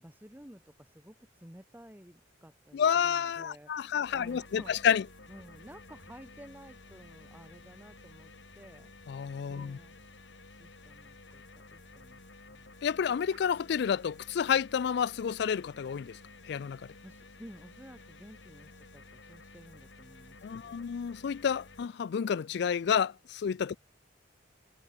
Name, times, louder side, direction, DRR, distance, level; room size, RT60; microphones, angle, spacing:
voice 1, 0.0-5.0 5.3-8.9 9.5-10.0 10.6-12.2 12.5-12.7 17.0-20.9, equal, 10° right, 2.1 m, -53 dB
voice 2, 2.7-5.0 9.1-9.8 12.8-16.2 16.5-16.8 20.4-23.8, left 7 dB, 65° left, 0.4 m, -30 dB
sound 1, 3.1-3.6 4.6-5.1 6.0-6.2 7.2-7.6 8.4-8.6 10.5-10.7 11.3-11.4 12.3-12.4 13.3-13.6 14.4-14.5, right 5 dB, 80° right, 1.7 m, -59 dB
sound 2, 4.0-21.9, left 3 dB, 80° left, 4.4 m, -53 dB
sound 3, 5.2-12.1, equal, 30° left, 4.0 m, -69 dB
head